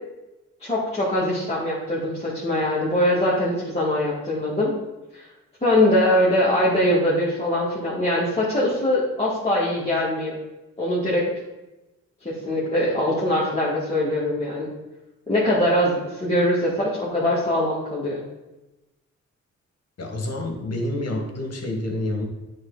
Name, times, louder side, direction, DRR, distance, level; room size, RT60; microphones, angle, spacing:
voice 1, 0.6-4.7 5.1-5.3 5.6-10.4 10.8-11.3 12.2-14.7 15.3-18.2, left 1 dB, 20° left, -8 dB, 1.9 m, -22 dB
voice 2, 20.0-22.3, left 1 dB, 55° left, 2 dB, 1.6 m, -28 dB
8.7 x 3.6 x 4.0 m, 1.0 s
cardioid pair, 65°, 30 cm